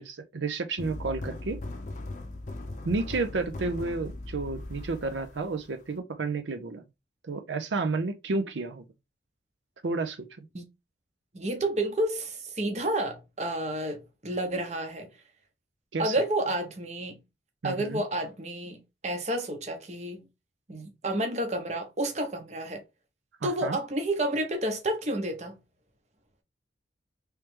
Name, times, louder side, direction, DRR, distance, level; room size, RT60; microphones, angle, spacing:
voice 1, 0.0-1.6 2.8-6.8 7.3-8.8 9.8-10.3 15.9-16.1 17.6-18.0 23.4-23.8, right 3 dB, 85° right, 0.6 m, -31 dB
sound 1, 0.8-6.0, left 2 dB, 40° left, 0.5 m, -39 dB
voice 2, 11.3-15.1 16.0-17.2 17.6-20.3 20.7-22.8 23.4-25.6, right 1 dB, 40° right, 0.8 m, -30 dB
3.2 x 3.2 x 3.2 m
head